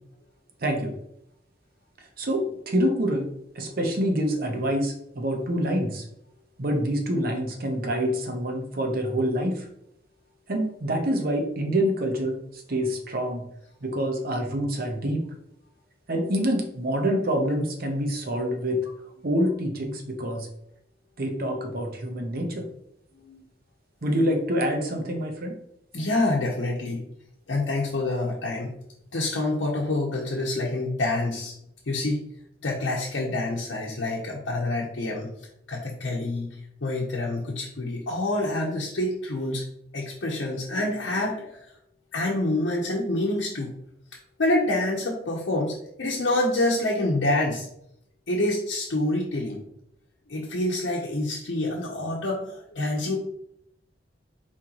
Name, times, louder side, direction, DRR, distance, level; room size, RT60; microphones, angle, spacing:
voice 1, 0.6-0.9 2.2-3.3 3.5-6.0 6.6-9.7 10.5-13.4 13.8-15.2 16.1-18.8 19.2-20.5 21.2-22.7 24.0-25.5, equal, 55° right, 3 dB, 0.9 m, -26 dB
voice 2, 25.9-27.0 27.5-28.7 29.1-31.5 31.9-32.2 32.6-35.3 35.7-36.5 36.8-39.6 39.9-41.6 42.1-43.7 44.4-47.7 48.3-49.6 50.3-53.2, left 2 dB, 90° left, -4 dB, 0.8 m, -27 dB
4.4 x 3.7 x 2.9 m, 0.73 s
head